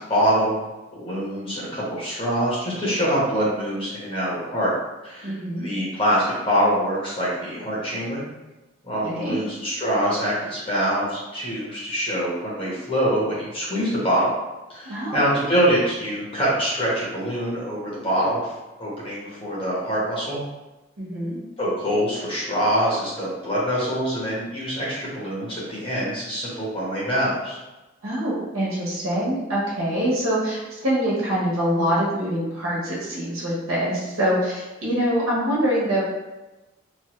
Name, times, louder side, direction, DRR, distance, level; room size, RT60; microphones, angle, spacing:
voice 1, 0.1-0.6 0.9-4.7 5.0-8.2 8.8-14.3 14.7-18.5 18.8-20.4 21.6-27.6, equal, 25° left, -7 dB, 1.0 m, -24 dB
voice 2, 5.2-5.7 9.0-9.4 14.8-15.2 21.0-21.4 28.0-36.0, equal, 90° right, -5 dB, 1.1 m, -24 dB
3.0 x 2.2 x 3.0 m, 1.0 s
head